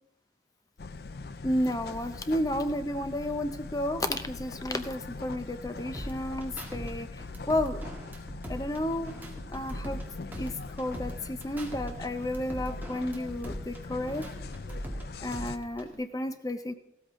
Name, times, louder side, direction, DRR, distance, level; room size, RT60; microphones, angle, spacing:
sound 1, 0.8-15.6, left 3 dB, 60° left, 0.5 m, -42 dB
voice 1, 1.4-7.1 7.5-7.8 8.5-9.2 9.5-10.0 10.4-10.5 10.8-14.2 15.2-16.7, left 1 dB, 20° left, 9 dB, 0.7 m, -32 dB
sound 2, 5.9-6.9 7.2-10.1 10.3-11.9 12.2-15.0 15.3-15.9, right 1 dB, 10° right, 1.7 m, -40 dB
14.5 x 13.0 x 3.7 m, 0.81 s
head